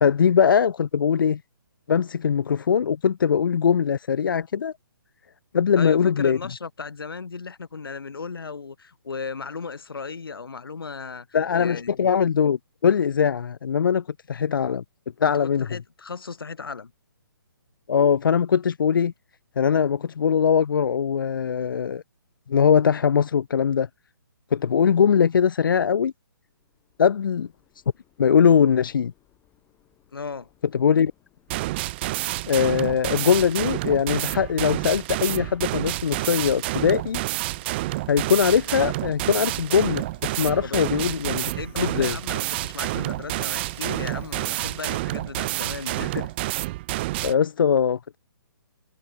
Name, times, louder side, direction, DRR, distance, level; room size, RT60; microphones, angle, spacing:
voice 1, 0.0-1.4 1.9-4.7 5.5-6.4 11.3-14.8 15.2-15.7 17.9-19.1 19.6-22.0 22.5-23.9 24.5-26.1 27.0-27.5 28.2-29.1 30.7-31.1 32.5-37.2 38.1-41.5 41.7-42.2 46.0-46.2 47.2-48.2, left 7 dB, 65° left, 0.6 m, -21 dB
voice 2, 5.8-11.3 11.6-11.9 15.4-16.9 30.1-30.5 40.6-40.9 41.6-46.1, left 5 dB, 80° left, 1.8 m, -36 dB
Train, 26.5-45.2, left 13 dB, 15° left, 5.5 m, -58 dB
sound 1, 31.5-47.3, right 19 dB, 30° right, 1.0 m, -29 dB
hypercardioid pair, 150°, 12 cm